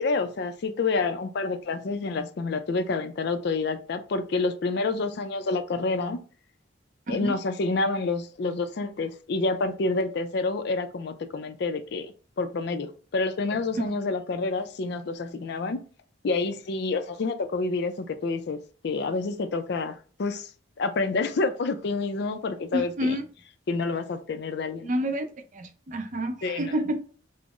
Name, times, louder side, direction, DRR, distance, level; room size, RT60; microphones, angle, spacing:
voice 1, 0.0-6.2 7.1-15.8 16.2-20.5 20.8-23.2 23.7-24.9 26.4-26.7, left 3 dB, 55° left, 0.4 m, -28 dB
voice 2, 22.7-23.3 24.9-25.2 25.5-27.0, equal, 40° right, 0.5 m, -29 dB
5.2 x 2.0 x 2.4 m
head